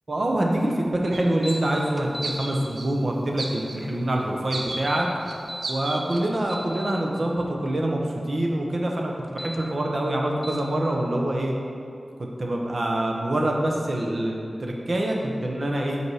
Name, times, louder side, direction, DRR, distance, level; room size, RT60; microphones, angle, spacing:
voice 1, 0.1-5.1 5.7-8.0 8.3-11.5 12.2-16.0, right 1 dB, 50° right, 0 dB, 0.8 m, -25 dB
sound 1, 1.1-1.2 1.5-1.8 2.2-2.9 3.4-3.8 4.5-4.8 5.2-5.4 5.6-6.2, right 2 dB, 85° right, 0.5 m, -33 dB
sound 2, 1.4-1.6 2.0-2.4 4.7-5.7 6.2-6.9 9.2-9.6 10.4-10.6, equal, 5° left, 0.4 m, -36 dB
5.4 x 4.6 x 4.8 m, 2.5 s
wide cardioid pair, 95°, 0 cm